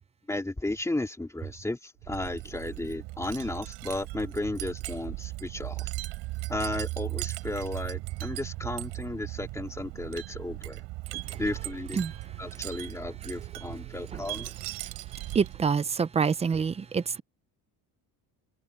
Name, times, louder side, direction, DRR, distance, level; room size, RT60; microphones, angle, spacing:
voice 1, 0.3-5.9 6.5-10.8 11.4-12.0 12.4-14.5, left 2 dB, 5° left, 2.3 m, -34 dB
Wind chime, 2.0-15.7, right 20 dB, 75° right, 4.7 m, -38 dB
voice 2, 15.3-17.2, right 6 dB, 15° right, 0.4 m, -26 dB
cardioid pair, 165°, 42 cm